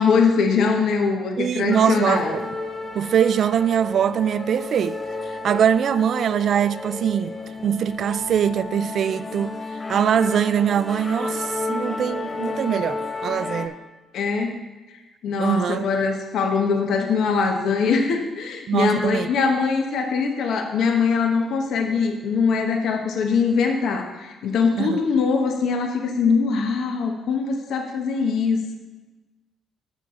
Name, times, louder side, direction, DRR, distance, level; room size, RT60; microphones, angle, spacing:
voice 1, 0.0-2.3 14.1-14.6 15.2-28.7, left 5 dB, 75° left, 1.0 m, -22 dB
voice 2, 1.4-2.4 2.9-5.0 5.4-7.3 7.6-9.6 9.9-13.7 15.4-15.9 18.7-19.3 24.8-25.1, right 8 dB, 65° right, 0.3 m, -22 dB
sound 1, 1.7-13.7, left 3 dB, 25° left, 1.8 m, -31 dB
10.5 x 7.0 x 3.7 m
supercardioid pair, 60°, 0 cm